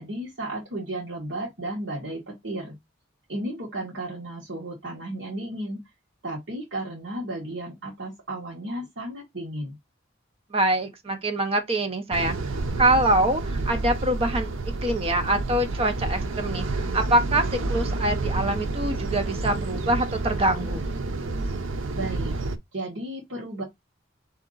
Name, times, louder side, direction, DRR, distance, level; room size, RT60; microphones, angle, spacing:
voice 1, 0.0-2.8 3.3-5.9 6.2-9.7 21.9-22.3 22.7-23.6, right 1 dB, 65° right, 1.4 m, -34 dB
voice 2, 10.5-12.4 12.8-14.5 14.8-20.8, right 1 dB, 30° right, 0.8 m, -24 dB
sound 1, 12.1-22.6, right 2 dB, 90° right, 0.6 m, -29 dB
3.7 x 2.8 x 3.8 m
head